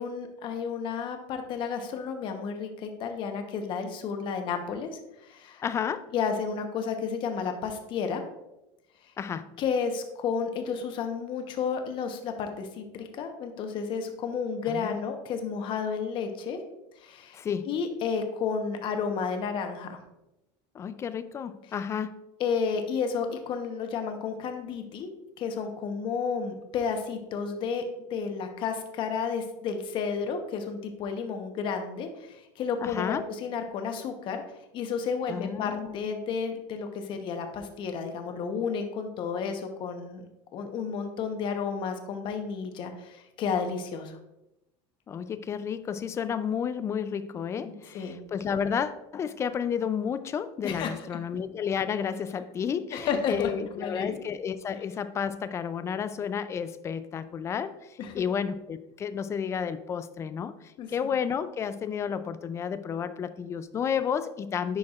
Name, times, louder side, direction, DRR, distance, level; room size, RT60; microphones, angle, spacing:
voice 1, 0.0-5.6 6.1-8.2 9.6-16.6 17.0-20.0 22.4-25.1 25.4-27.8 28.1-34.4 34.7-40.2 40.5-44.2 47.6-48.2 50.6-50.9 52.9-54.2 58.0-58.1 60.8-60.9, left 6 dB, 45° left, 6 dB, 0.9 m, -32 dB
voice 2, 5.6-6.1 9.2-9.5 14.7-15.0 17.3-17.7 20.7-22.2 32.8-33.3 35.3-36.0 45.1-64.8, left 7 dB, 25° left, 13 dB, 0.3 m, -31 dB
10.5 x 4.6 x 2.4 m, 0.92 s
cardioid pair, 145°, 12 cm